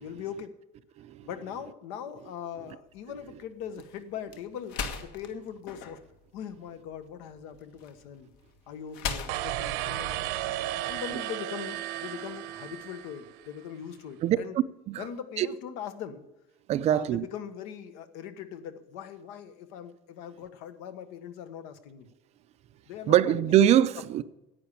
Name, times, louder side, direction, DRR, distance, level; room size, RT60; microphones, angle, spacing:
voice 1, 0.0-0.5 1.2-6.0 6.3-8.3 8.7-10.4 10.9-14.5 15.0-16.2 16.8-22.1 22.9-23.6, left 8 dB, 80° left, 1.4 m, -41 dB
voice 2, 1.0-1.3 14.2-14.4 14.9-15.1 15.4-15.5 16.7-17.3 23.1-24.2, right 11 dB, 35° right, 0.5 m, -23 dB
sound 1, 2.9-11.1, left 6 dB, 65° left, 1.5 m, -41 dB
sound 2, 9.3-13.5, right 14 dB, 80° right, 1.0 m, -34 dB
10.5 x 8.9 x 8.6 m
cardioid pair, 160°, 18 cm